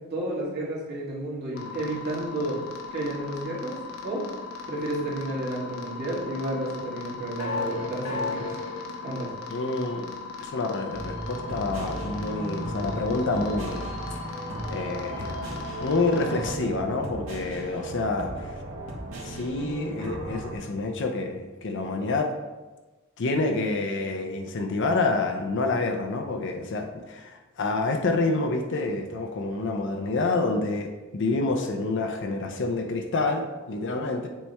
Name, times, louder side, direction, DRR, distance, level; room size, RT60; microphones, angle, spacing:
voice 1, 0.1-2.6 2.9-3.8 4.0-4.2 4.7-8.5 9.0-9.3, right 1 dB, 50° right, -5 dB, 1.9 m, -31 dB
sound 1, 1.5-16.5, left 4 dB, 90° left, 0.9 m, -37 dB
voice 2, 9.5-10.1 10.4-14.3 14.7-15.3 15.8-18.5 19.2-22.3 23.2-34.3, left 3 dB, 60° left, 4 dB, 0.6 m, -28 dB
sound 2, 10.9-20.6, right 1 dB, 85° right, 1.4 m, -36 dB
7.4 x 3.4 x 4.3 m, 1.2 s
head